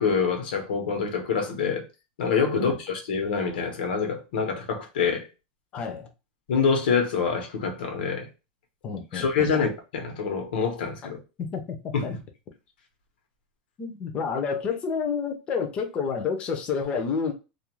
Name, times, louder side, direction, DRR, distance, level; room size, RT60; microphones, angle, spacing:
voice 1, 0.0-1.8 2.2-5.3 6.5-8.3 9.1-11.2 11.9-12.2, left 5 dB, 85° left, 0.9 m, -26 dB
voice 2, 5.7-6.1 8.8-9.5 11.4-12.1 13.8-17.3, left 6 dB, 20° left, 0.4 m, -29 dB
2.4 x 2.2 x 2.9 m
supercardioid pair, 175°, 5 cm